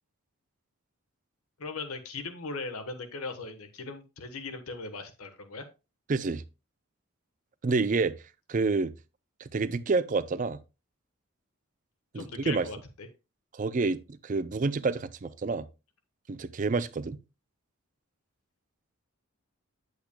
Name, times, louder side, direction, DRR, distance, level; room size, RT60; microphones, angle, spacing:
voice 1, 1.6-5.7 12.1-13.1, left 3 dB, 85° left, 1.2 m, -39 dB
voice 2, 6.1-6.4 7.6-8.2 8.5-8.9 9.4-10.6 12.1-12.7 13.5-15.6 16.3-17.2, right 4 dB, 35° right, 0.4 m, -28 dB
8.5 x 8.0 x 2.2 m
head